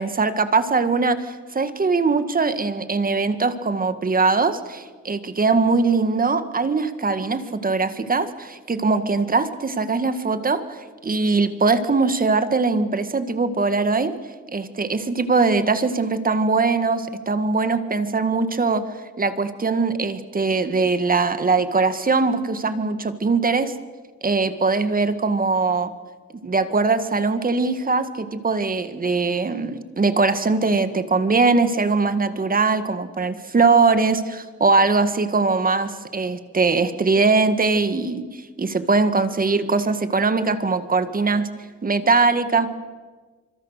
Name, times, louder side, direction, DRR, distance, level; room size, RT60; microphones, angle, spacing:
voice 1, 0.0-14.1 14.5-18.8 19.2-23.7 24.2-25.9 26.4-41.5 41.8-42.7, right 4 dB, 30° right, 10 dB, 1.8 m, -21 dB
25.5 x 24.0 x 6.6 m, 1.4 s
cardioid pair, 90°, 30 cm